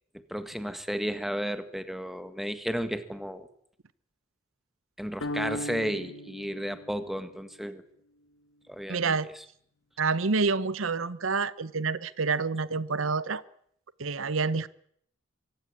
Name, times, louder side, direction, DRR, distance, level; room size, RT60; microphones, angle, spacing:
voice 1, 0.3-3.5 5.0-7.8 8.7-9.4, equal, ahead, 10 dB, 1.7 m, -33 dB
sound 1, 5.2-7.5, left 1 dB, 75° left, 1.9 m, -37 dB
voice 2, 8.9-9.3 10.0-13.4 14.0-14.7, right 4 dB, 85° right, 18 dB, 0.9 m, -28 dB
24.0 x 16.0 x 9.9 m, 0.68 s
head